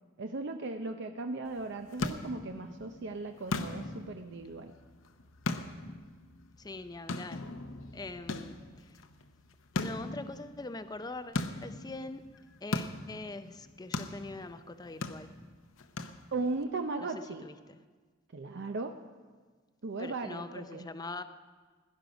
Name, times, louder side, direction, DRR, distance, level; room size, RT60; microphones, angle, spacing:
voice 1, 0.2-4.7 16.3-17.4 18.3-18.9 19.8-20.9, right 3 dB, 60° right, 6 dB, 0.6 m, -37 dB
sound 1, 1.5-16.6, left 3 dB, 70° left, 0.8 m, -40 dB
voice 2, 6.6-7.4 7.9-8.6 8.9-9.0 9.8-12.3 12.6-15.4 17.0-17.8 20.0-21.2, left 2 dB, 20° left, 11 dB, 0.5 m, -43 dB
17.5 x 11.0 x 5.1 m, 1.4 s
head